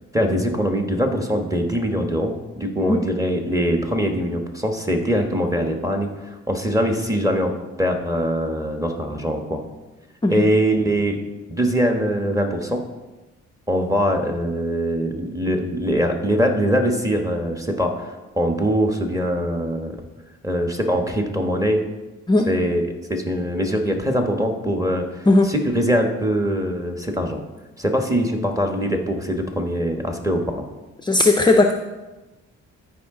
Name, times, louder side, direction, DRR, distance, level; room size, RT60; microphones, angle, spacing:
voice 1, 0.1-6.1 6.5-7.5 7.8-9.6 10.3-11.2 11.5-12.8 13.7-20.0 20.4-21.8 22.5-22.8 23.1-27.4 27.8-30.6, equal, 10° right, 3 dB, 1.3 m, -22 dB
voice 2, 31.0-31.7, left 2 dB, 15° left, 5 dB, 0.5 m, -16 dB
13.5 x 4.9 x 3.8 m, 1.1 s
cardioid pair, 90°, 30 cm